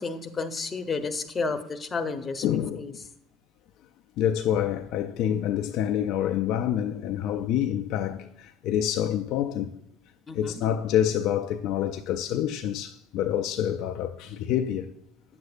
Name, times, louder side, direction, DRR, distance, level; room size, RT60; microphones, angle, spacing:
voice 1, 0.0-2.4 2.8-2.9 10.3-10.6, left 4 dB, 25° left, 0.9 m, -31 dB
voice 2, 2.4-3.0 4.2-9.7 10.3-14.9, left 10 dB, 60° left, 0.4 m, -27 dB
9.3 x 7.7 x 2.4 m
hypercardioid pair, 70°, 0 cm